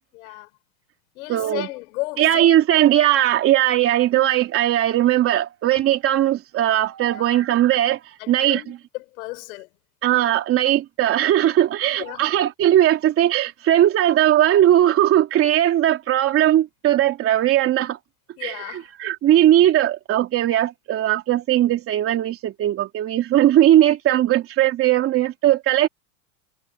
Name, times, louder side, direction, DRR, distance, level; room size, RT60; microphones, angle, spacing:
voice 1, 0.1-0.5 1.1-2.5 7.1-7.4 8.2-9.7 12.0-12.3 18.4-18.9, left 21 dB, 65° left, 4.8 m, -34 dB
voice 2, 1.3-1.7 2.2-8.0 8.3-8.8 10.0-18.0 18.4-25.9, right 12 dB, 30° right, 3.2 m, -19 dB
supercardioid pair, 160°, 45 cm